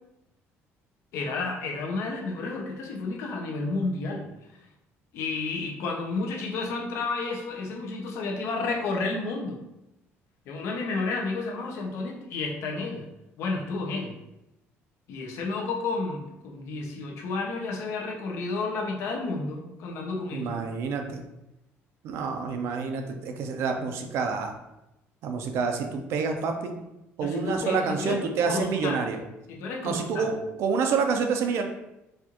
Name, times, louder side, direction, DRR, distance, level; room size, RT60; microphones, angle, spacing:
voice 1, 1.1-4.3 5.1-9.6 10.5-13.1 13.4-14.1 15.1-20.6 27.2-28.2 28.5-29.1 29.5-30.3, left 3 dB, 65° left, 1 dB, 0.7 m, -31 dB
voice 2, 20.3-21.2 22.0-24.5 25.2-26.8 27.2-29.2 29.8-31.6, right 5 dB, 60° right, 5 dB, 0.5 m, -28 dB
4.2 x 2.4 x 2.9 m, 0.92 s
cardioid pair, 160°, 5 cm